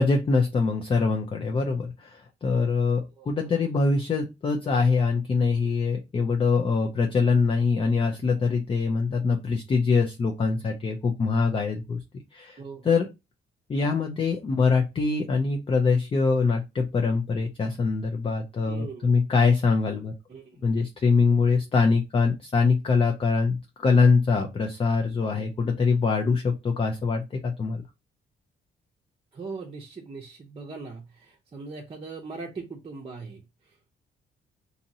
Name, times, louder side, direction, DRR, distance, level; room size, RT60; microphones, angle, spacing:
voice 1, 0.0-12.0 12.3-12.6 12.8-13.1 13.7-20.1 20.6-27.8, left 4 dB, 25° left, 3 dB, 0.5 m, -23 dB
voice 2, 18.7-19.1 20.3-20.7 25.3-25.5 29.3-33.9, right 4 dB, 30° right, 0 dB, 0.7 m, -40 dB
2.8 x 2.7 x 2.7 m, 0.24 s
cardioid pair, 90°, 20 cm